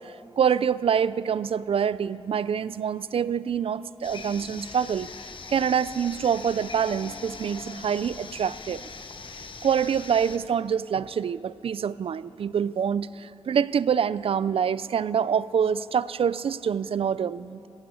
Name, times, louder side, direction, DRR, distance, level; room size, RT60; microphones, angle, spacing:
voice 1, 0.0-5.1 5.5-8.8 9.6-17.7, right 7 dB, 70° right, 17 dB, 0.4 m, -26 dB
sound 1, 4.0-10.4, left 4 dB, 60° left, 1.0 m, -41 dB
19.0 x 16.0 x 8.4 m, 2.7 s
wide cardioid pair, 175°, 10 cm